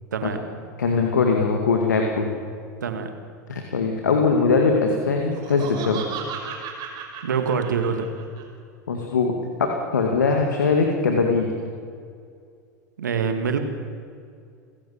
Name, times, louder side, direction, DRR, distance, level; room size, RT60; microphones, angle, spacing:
voice 1, 0.1-0.7 2.8-3.1 7.2-8.1 13.0-13.6, right 6 dB, 85° right, 6 dB, 2.3 m, -25 dB
voice 2, 0.8-2.3 3.5-6.0 8.9-9.3 9.6-11.5, left 4 dB, 85° left, 2 dB, 2.3 m, -21 dB
Laughter, 5.2-8.4, right 6 dB, 50° right, 5.7 m, -35 dB
29.5 x 16.5 x 7.4 m, 2.3 s
hypercardioid pair, 90°, 9 cm